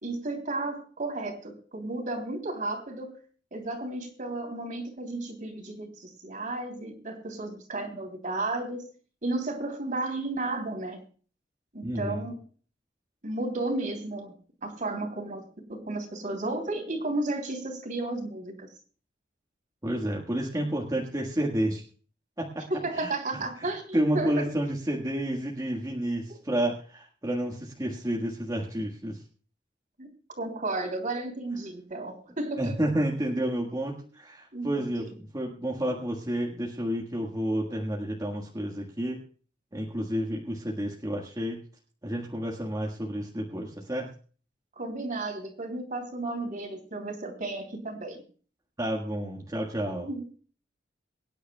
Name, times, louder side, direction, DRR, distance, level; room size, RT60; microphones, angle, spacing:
voice 1, 0.0-3.1 3.5-8.9 9.2-11.0 11.7-12.4 13.2-18.7 22.7-24.5 26.3-26.4 30.0-30.1 30.4-32.7 34.5-34.7 35.0-35.1 44.8-48.2 49.9-50.2, right 2 dB, 45° right, 4 dB, 3.1 m, -33 dB
voice 2, 11.8-12.3 19.8-21.8 22.4-22.7 22.9-23.1 23.6-29.2 32.6-39.2 39.7-41.6 42.0-44.1 48.8-50.1, right 1 dB, 20° right, -1 dB, 1.6 m, -30 dB
24.0 x 10.0 x 2.3 m, 0.40 s
head